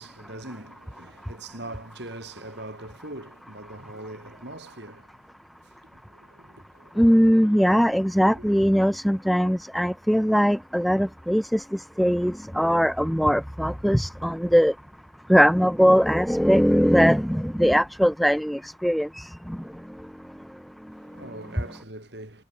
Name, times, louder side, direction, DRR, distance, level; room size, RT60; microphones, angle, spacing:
voice 1, 0.0-5.2 5.6-7.8 8.3-8.6 21.0-22.4, right 1 dB, 60° right, 5.4 m, -42 dB
voice 2, 7.0-11.6 12.0-14.7 15.3-19.2, equal, ahead, 0.6 m, -20 dB
head